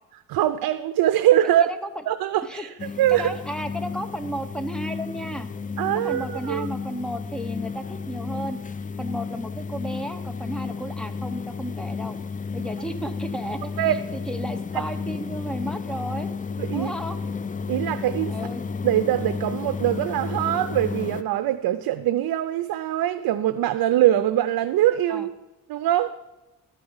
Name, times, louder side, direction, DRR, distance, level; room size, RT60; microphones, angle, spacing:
voice 1, 0.3-1.7 2.1-3.3 5.8-6.7 13.8-14.0 14.7-14.8 16.6-16.9 17.7-18.4 18.8-25.3 25.7-26.1, right 12 dB, 75° right, 11 dB, 0.6 m, -23 dB
voice 2, 2.4-5.5 5.9-8.6 9.0-12.2 12.5-13.7 14.1-16.3 16.7-17.2 18.3-18.6 25.1-25.3, right 1 dB, ahead, 7 dB, 0.9 m, -33 dB
sound 1, 2.8-21.2, left 5 dB, 25° left, 0.4 m, -32 dB
12.0 x 4.9 x 7.1 m, 1.1 s
cardioid pair, 100°, 36 cm